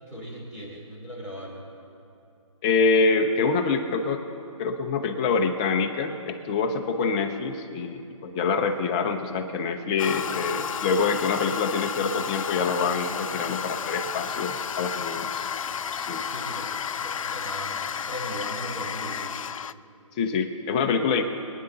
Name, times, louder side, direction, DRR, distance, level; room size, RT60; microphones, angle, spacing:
voice 1, 0.1-1.7 16.2-16.7 17.0-19.4, equal, 10° right, -5 dB, 2.7 m, -38 dB
voice 2, 2.6-4.2 4.6-15.5 16.0-16.2 20.2-21.2, left 4 dB, 10° left, 5 dB, 0.4 m, -25 dB
Toilet flush, 10.0-19.7, left 7 dB, 75° left, 0.4 m, -32 dB
24.0 x 9.6 x 3.9 m, 2.8 s
hypercardioid pair, 160°, 17 cm